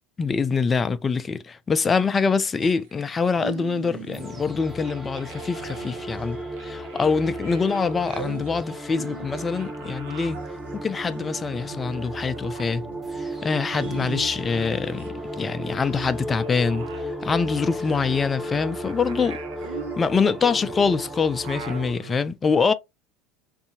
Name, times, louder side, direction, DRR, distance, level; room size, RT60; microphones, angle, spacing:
voice 1, 0.2-10.4 10.7-12.8 13.4-15.0 15.4-16.9 17.2-19.4 20.0-22.7, left 5 dB, 25° left, 0.4 m, -24 dB
sound 1, 2.6-4.5 4.8-15.1 15.4-22.2, right 7 dB, 70° right, 0.5 m, -42 dB
sound 2, 4.1-21.9, right 1 dB, 15° right, 0.9 m, -34 dB
2.7 x 2.6 x 2.6 m
hypercardioid pair, 75°, 0 cm